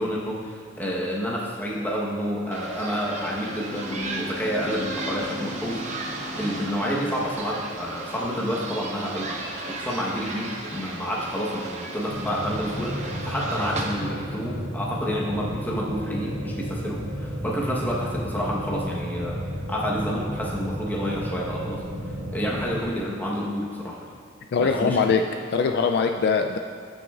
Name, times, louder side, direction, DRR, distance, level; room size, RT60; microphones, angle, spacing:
voice 1, 0.0-9.4 9.8-19.4 19.7-21.8 22.3-24.1 24.6-25.0, equal, 10° left, -4 dB, 1.0 m, -29 dB
sound 1, 2.5-13.9, right 2 dB, 35° right, 0.8 m, -35 dB
sound 2, 12.1-22.8, equal, 80° right, 1.6 m, -32 dB
voice 2, 24.5-25.2 25.5-26.6, left 5 dB, 55° left, 5 dB, 0.3 m, -22 dB
14.5 x 6.2 x 2.4 m, 2.3 s
head